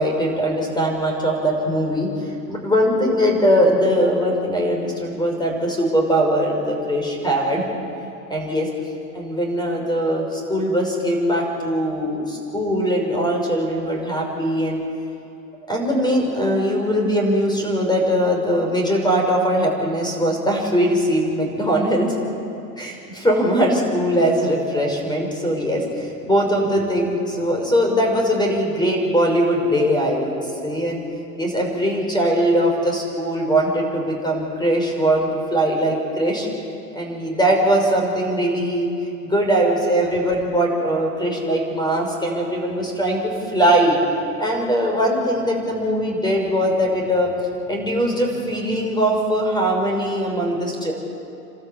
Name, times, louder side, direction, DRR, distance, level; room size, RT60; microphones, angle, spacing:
voice 1, 0.0-7.7 8.3-8.7 9.1-14.8 15.7-22.1 22.8-30.4 30.6-31.0 31.4-36.5 36.9-38.9 39.2-44.0 44.4-47.3 47.7-50.9, equal, 10° left, 1 dB, 5.7 m, -21 dB
28.0 x 13.0 x 8.5 m, 2.7 s
hypercardioid pair, 95°, 49 cm